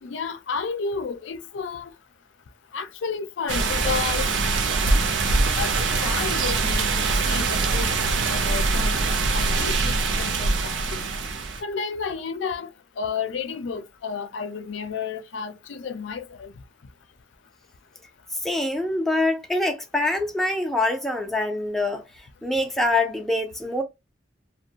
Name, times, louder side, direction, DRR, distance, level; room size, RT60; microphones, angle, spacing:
voice 1, 0.0-1.9 2.7-4.3 5.5-7.9 8.3-9.0 9.3-11.1 11.6-12.7 13.0-16.5, left 5 dB, 85° left, 0.5 m, -31 dB
sound 1, 3.5-11.6, right 3 dB, 85° right, 0.5 m, -23 dB
voice 2, 18.3-23.8, left 2 dB, ahead, 0.4 m, -25 dB
2.5 x 2.1 x 2.7 m
head